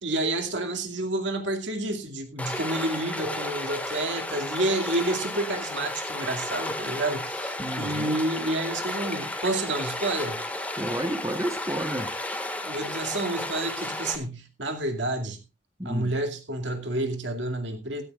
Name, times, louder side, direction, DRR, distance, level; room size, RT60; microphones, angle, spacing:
voice 1, 0.0-10.4 12.6-15.4 15.8-18.0, right 2 dB, 70° right, 2.4 m, -29 dB
Stream, 2.4-14.2, left 1 dB, 10° left, 1.7 m, -33 dB
voice 2, 7.6-8.2 10.8-12.1 15.8-16.1, right 1 dB, 15° right, 1.2 m, -31 dB
16.5 x 13.5 x 2.4 m
head